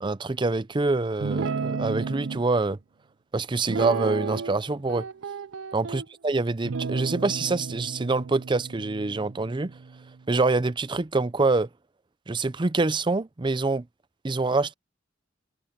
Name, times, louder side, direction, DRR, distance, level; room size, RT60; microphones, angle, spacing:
voice 1, 0.0-2.8 3.3-5.1 5.7-9.7 10.3-11.7 12.3-13.9 14.2-14.7, right 3 dB, 25° right, 0.5 m, -25 dB
Guitar, 1.2-2.4 3.7-4.6 4.9-6.1 6.7-10.1, right 5 dB, 85° right, 0.6 m, -32 dB
head